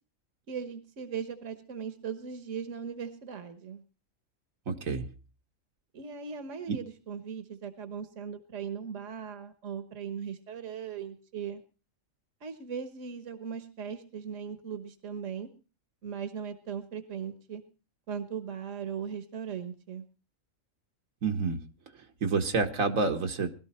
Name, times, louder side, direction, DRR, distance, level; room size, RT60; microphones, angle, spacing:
voice 1, 0.5-3.8 5.9-11.6 12.4-15.5 16.0-17.6 18.1-20.0, right 7 dB, 70° right, 9 dB, 1.6 m, -38 dB
voice 2, 4.7-5.1 6.7-6.8 21.2-21.6 22.2-23.5, right 4 dB, 85° right, 3 dB, 1.9 m, -28 dB
21.0 x 12.5 x 4.3 m, 0.35 s
omnidirectional pair, 1.3 m